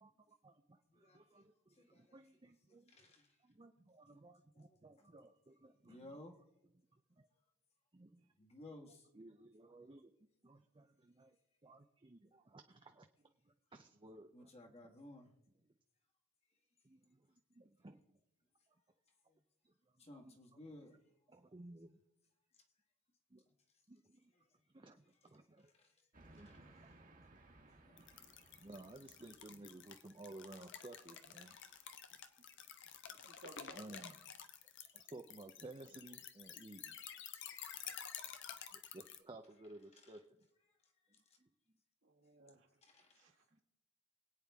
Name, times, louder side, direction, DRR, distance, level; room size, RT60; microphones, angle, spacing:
voice 1, 0.0-3.0 3.4-6.2 7.2-7.3 7.9-8.3 8.9-10.1 10.4-11.4 11.6-13.1 13.4-14.5 16.8-18.2 19.6-19.7 20.2-20.6 21.3-22.0 23.3-23.4 23.9-24.3 24.7-25.7 26.2-26.6 28.0-28.1 28.6-31.6 33.8-34.1 34.9-37.0 38.7-40.4 41.4-41.5 42.5-42.6 43.5-43.6, right 2 dB, 25° right, 0.6 m, -56 dB
voice 2, 0.9-1.5 1.8-2.2 2.7-3.3 4.5-4.8 5.8-6.3 8.4-9.1 14.3-15.3 19.3-19.4 20.0-21.0 25.7-25.9 26.3-26.6 27.7-28.0 28.6-28.7 31.5-32.0 38.8-39.0 41.3-41.4 42.8-43.3, left 1 dB, 30° left, 1.5 m, -58 dB
Train, 26.1-30.1, right 2 dB, 40° right, 1.4 m, -63 dB
sound 1, 28.0-39.2, left 8 dB, 55° left, 1.0 m, -51 dB
voice 3, 33.1-34.1 34.9-35.1 37.6-38.0 42.0-43.6, right 3 dB, 60° right, 1.8 m, -62 dB
24.5 x 9.0 x 3.5 m
head